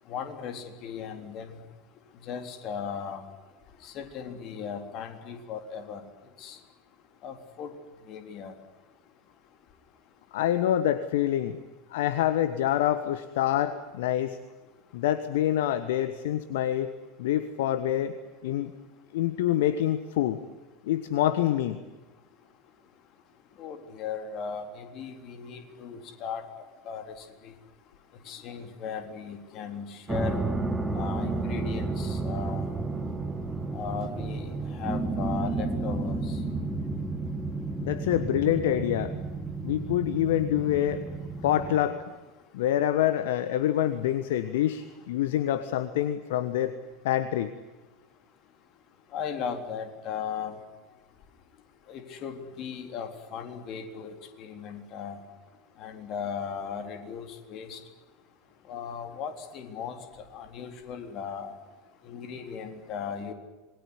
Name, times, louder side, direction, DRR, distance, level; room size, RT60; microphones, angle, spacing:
voice 1, 0.1-1.6 2.2-3.2 3.8-6.0 6.4-6.6 7.2-7.7 8.1-8.5 23.6-26.4 26.9-27.5 28.3-30.3 30.9-32.7 33.7-36.4 49.1-50.6 51.9-55.2 55.8-57.8 58.7-60.0 60.3-61.5 62.0-63.3, left 7 dB, 40° left, 7 dB, 3.8 m, -37 dB
voice 2, 10.3-11.6 11.9-14.4 14.9-16.9 17.2-18.1 18.4-18.7 19.1-20.4 20.9-21.8 37.8-39.1 39.6-41.1 41.4-42.0 42.5-46.8 47.0-47.5, left 12 dB, 60° left, 13 dB, 1.3 m, -26 dB
sound 1, 30.1-41.8, right 3 dB, 10° right, 3.5 m, -31 dB
27.5 x 21.5 x 9.9 m, 1.2 s
figure-of-eight pair, 80°, 0 cm